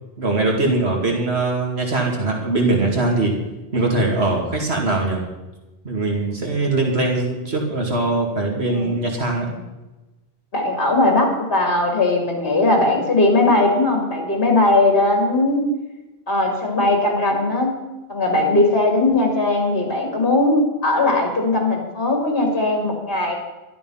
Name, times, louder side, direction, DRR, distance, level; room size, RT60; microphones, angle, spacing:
voice 1, 0.2-3.3 3.7-5.2 5.8-9.5, right 2 dB, 70° right, 0 dB, 2.3 m, -21 dB
voice 2, 10.5-15.6 16.3-17.7 18.1-23.4, left 2 dB, 60° left, 2 dB, 2.7 m, -19 dB
13.0 x 12.0 x 5.6 m, 1.1 s
omnidirectional pair, 1.1 m